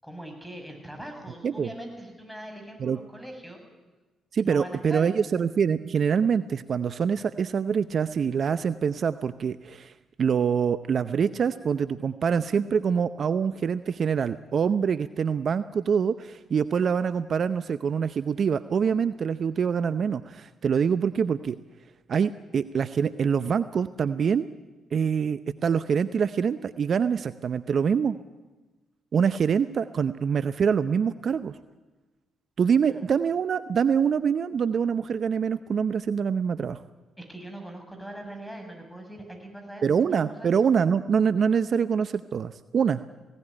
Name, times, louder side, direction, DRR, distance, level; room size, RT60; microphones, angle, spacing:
voice 1, 0.0-3.6 4.4-5.2 32.9-33.0 37.2-40.7, right 1 dB, ahead, 4 dB, 7.2 m, -41 dB
voice 2, 4.3-9.9 10.2-21.6 22.1-24.5 24.9-28.2 29.1-31.6 32.6-36.8 39.8-43.0, right 6 dB, 55° right, 13 dB, 0.7 m, -25 dB
18.5 x 17.5 x 10.0 m, 1.2 s
hypercardioid pair, 55°, 0 cm